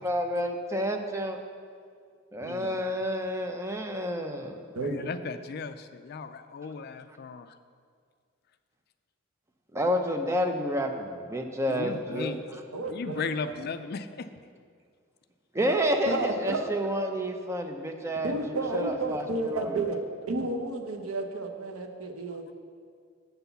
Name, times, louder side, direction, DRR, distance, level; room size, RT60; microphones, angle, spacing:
voice 1, 0.0-1.4 2.3-4.6 9.7-12.4 15.5-19.2 19.5-19.8, equal, 15° right, 4 dB, 0.5 m, -29 dB
voice 2, 2.4-2.7 4.7-5.0 12.7-13.5 15.6-16.7 18.2-20.0 20.3-22.5, right 2 dB, 90° right, 4 dB, 0.7 m, -32 dB
voice 3, 4.8-7.5 11.7-12.4 12.9-14.3, left 5 dB, 45° left, 10 dB, 0.3 m, -36 dB
8.0 x 4.0 x 6.8 m, 2.1 s
head